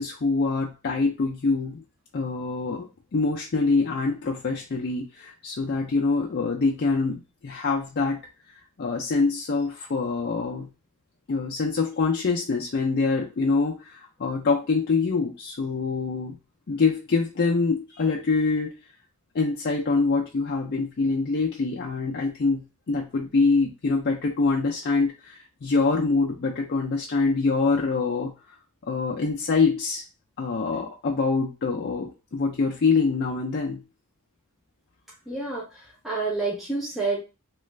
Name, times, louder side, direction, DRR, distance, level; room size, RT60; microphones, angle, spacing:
voice 1, 0.0-1.8 2.1-2.9 3.1-8.2 8.8-10.7 11.3-16.4 16.7-18.8 19.3-28.3 28.9-30.0 30.4-33.8, left 4 dB, 50° left, -2 dB, 0.4 m, -25 dB
voice 2, 35.3-37.2, right 3 dB, ahead, -5 dB, 0.7 m, -29 dB
3.0 x 2.4 x 3.2 m, 0.31 s
head